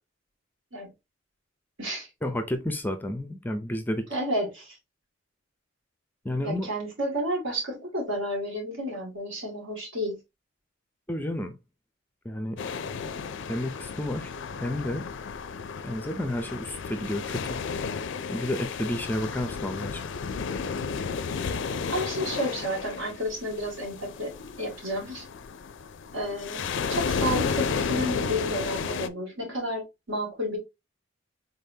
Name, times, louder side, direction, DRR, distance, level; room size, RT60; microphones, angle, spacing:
voice 1, 2.2-4.0 6.2-6.7 11.1-11.6 12.2-12.6 13.5-14.3 14.6-15.0 15.8-17.6 18.3-20.0, left 1 dB, 10° left, 0.5 m, -31 dB
voice 2, 4.1-4.8 6.4-10.2 21.9-25.2 26.1-30.6, equal, 70° right, 2.2 m, -31 dB
sound 1, 12.6-29.1, left 5 dB, 65° left, 0.4 m, -33 dB
4.1 x 3.5 x 2.7 m
head